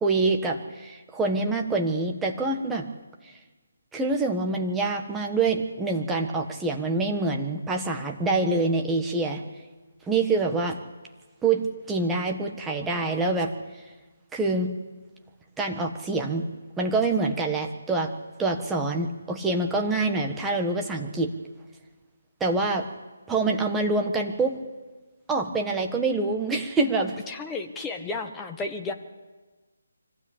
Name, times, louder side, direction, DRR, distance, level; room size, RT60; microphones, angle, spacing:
voice 1, 0.0-2.9 3.9-9.4 10.1-10.8 11.4-13.5 14.3-14.8 15.6-16.5 16.8-18.1 18.4-21.3 22.4-22.9 23.3-24.6 25.3-27.2, right 3 dB, 5° right, 2 dB, 1.4 m, -26 dB
voice 2, 27.3-28.9, left 3 dB, 10° left, 3 dB, 1.3 m, -33 dB
24.5 x 15.5 x 8.6 m, 1.3 s
figure-of-eight pair, 165°, 0 cm